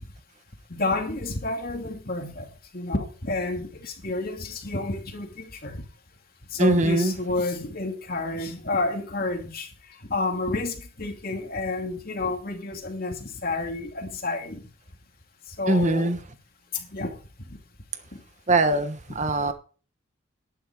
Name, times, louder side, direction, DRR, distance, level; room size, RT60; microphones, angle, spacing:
voice 1, 0.7-5.8 6.5-9.7 10.1-14.6 15.6-16.1 16.7-17.1, left 2 dB, 50° left, 2.6 m, -30 dB
voice 2, 6.6-7.1 15.7-16.2 18.5-19.5, right 2 dB, 40° right, 1.2 m, -21 dB
11.0 x 11.0 x 4.8 m
head